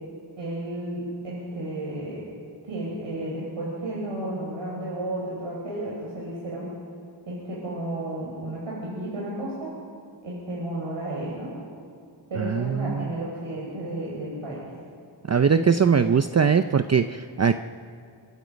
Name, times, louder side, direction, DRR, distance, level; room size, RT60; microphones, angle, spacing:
voice 1, 0.4-2.2 2.6-6.7 7.3-9.7 10.2-11.5 12.3-14.7 15.5-15.9, right 1 dB, 75° right, -5 dB, 5.4 m, -32 dB
voice 2, 12.4-13.1 15.3-17.6, right 6 dB, 35° right, 9 dB, 0.6 m, -21 dB
25.0 x 22.0 x 5.3 m, 2.3 s
wide cardioid pair, 75°, 47 cm